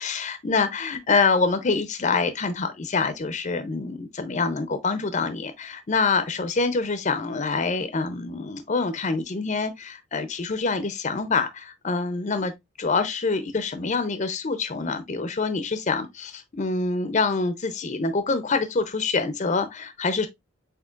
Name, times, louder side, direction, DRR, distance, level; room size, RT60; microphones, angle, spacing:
voice 1, 0.0-12.5 12.8-20.3, left 4 dB, 35° left, 0.5 m, -26 dB
8.1 x 2.8 x 2.3 m
head